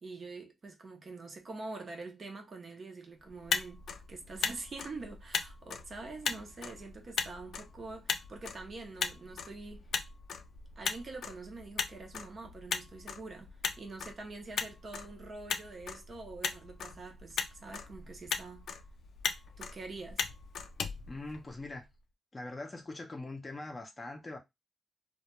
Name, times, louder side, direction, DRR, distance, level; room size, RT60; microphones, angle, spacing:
voice 1, 0.0-9.9 10.8-18.7 19.6-20.2, right 3 dB, 35° right, 0.5 m, -45 dB
Motor vehicle (road), 3.3-21.8, left 6 dB, 75° left, 0.3 m, -39 dB
voice 2, 21.1-21.9 22.3-24.4, left 2 dB, 20° left, 0.5 m, -42 dB
2.1 x 2.1 x 2.9 m
wide cardioid pair, 165°, 0 cm